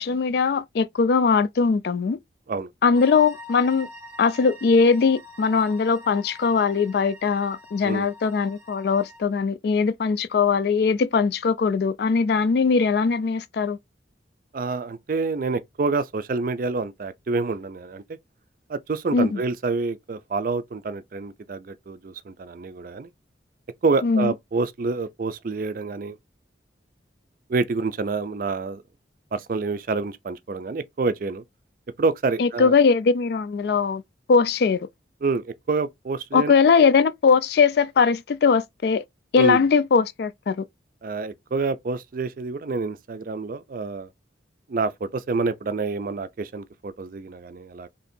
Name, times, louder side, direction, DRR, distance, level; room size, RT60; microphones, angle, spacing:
voice 1, 0.0-2.2 2.8-3.9 4.2-13.8 19.1-19.4 24.0-24.3 32.4-34.0 34.3-34.9 36.3-39.0 39.3-40.6, left 5 dB, 60° left, 0.3 m, -20 dB
sound 1, 2.9-9.2, left 1 dB, 10° right, 0.7 m, -45 dB
voice 2, 14.5-18.0 18.7-23.1 23.8-26.2 27.5-28.8 29.3-31.4 32.0-32.7 35.2-36.5 39.4-39.6 41.0-44.1 44.7-47.9, right 3 dB, 50° right, 0.4 m, -27 dB
2.9 x 2.6 x 4.2 m
head